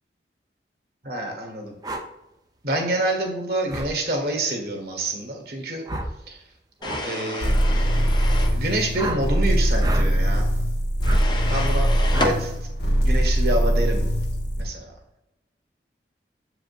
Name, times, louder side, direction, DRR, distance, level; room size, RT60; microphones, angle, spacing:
voice 1, 1.0-1.7 2.6-5.8 6.3-6.4 7.0-7.6 8.5-10.5 11.5-12.5 13.0-14.1 14.6-14.9, right 1 dB, 60° right, 2 dB, 1.6 m, -27 dB
sound 1, 1.8-2.0 3.7-3.9 5.8-6.2 6.8-7.0 8.9-9.2 9.8-10.1 11.0-11.2 12.1-12.4, right 1 dB, 20° right, 0.6 m, -30 dB
sound 2, 6.8-8.6 11.0-12.4, left 1 dB, 25° left, 0.7 m, -30 dB
sound 3, 7.4-14.7, equal, 70° left, 1.8 m, -21 dB
7.7 x 4.9 x 2.5 m, 0.93 s
head